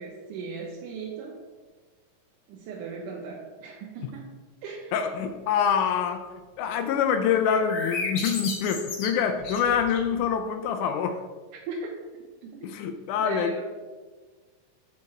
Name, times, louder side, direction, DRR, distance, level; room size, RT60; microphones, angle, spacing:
voice 1, 0.0-1.4 2.5-5.0 11.7-11.9 12.4-12.7 13.2-13.6, right 4 dB, 85° right, -2 dB, 2.3 m, -38 dB
voice 2, 4.9-6.2 6.6-11.2 12.6-13.6, left 7 dB, 85° left, 7 dB, 2.0 m, -25 dB
sound 1, 7.4-10.2, left 3 dB, 65° left, 1.0 m, -33 dB
6.5 x 5.0 x 4.2 m, 1.3 s
omnidirectional pair, 3.6 m